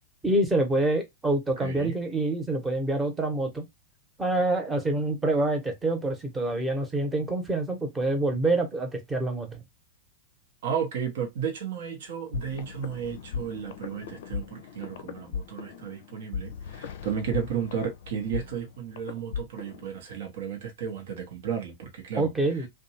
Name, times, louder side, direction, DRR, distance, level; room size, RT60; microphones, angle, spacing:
voice 1, 0.2-3.6 4.2-9.6 22.2-22.7, right 2 dB, 15° right, 0.9 m, -26 dB
voice 2, 1.6-2.0 10.6-22.3, right 7 dB, 65° right, 0.8 m, -33 dB
sound 1, 12.3-19.9, left 6 dB, 65° left, 0.5 m, -38 dB
2.6 x 2.2 x 2.7 m
hypercardioid pair, 100°, 0 cm